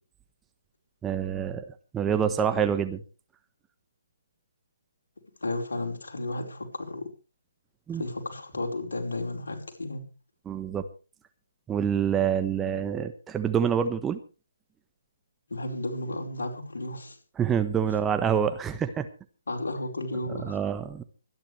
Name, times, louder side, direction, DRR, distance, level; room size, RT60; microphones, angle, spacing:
voice 1, 1.0-1.6 1.9-3.0 7.9-8.0 10.5-10.8 11.7-14.2 17.4-19.1 20.4-21.0, right 8 dB, 10° right, 1.1 m, -26 dB
voice 2, 5.4-7.1 7.9-10.1 15.5-17.2 17.9-18.0 19.5-20.6, left 2 dB, 70° left, 4.8 m, -33 dB
25.0 x 10.5 x 3.3 m
figure-of-eight pair, 140°, 0 cm